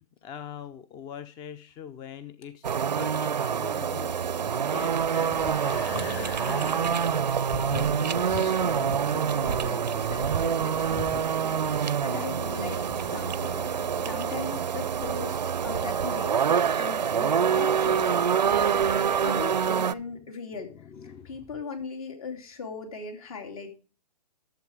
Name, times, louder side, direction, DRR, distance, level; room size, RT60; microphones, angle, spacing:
voice 1, 0.0-6.8 20.0-20.1 20.5-21.5, left 8 dB, 20° left, 14 dB, 0.5 m, -43 dB
sound 1, 2.6-19.9, right 7 dB, 90° right, 0.5 m, -26 dB
sound 2, 5.2-14.6, left 4 dB, 40° left, 5.3 m, -41 dB
voice 2, 7.4-20.7 21.0-23.7, left 4 dB, 60° left, 4 dB, 3.0 m, -40 dB
11.5 x 7.4 x 4.8 m, 0.36 s
hypercardioid pair, 130°, 21 cm